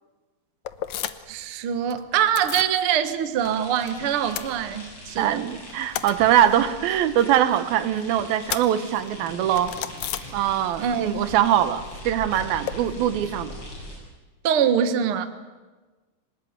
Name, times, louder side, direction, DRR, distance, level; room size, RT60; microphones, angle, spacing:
sound 1, 0.6-1.4 1.7-2.8 3.1-3.9 4.2-5.2 5.5-10.9 11.1-12.7, left 11 dB, 70° left, 1.8 m, -36 dB
voice 1, 1.3-5.4 10.8-11.1 14.4-15.3, right 9 dB, 60° right, 10 dB, 1.4 m, -24 dB
sound 2, 3.4-14.0, left 1 dB, 30° left, 8.8 m, -41 dB
voice 2, 5.2-9.8 10.3-13.5, right 11 dB, 75° right, 12 dB, 2.8 m, -22 dB
25.5 x 19.5 x 9.4 m, 1.3 s
omnidirectional pair, 4.4 m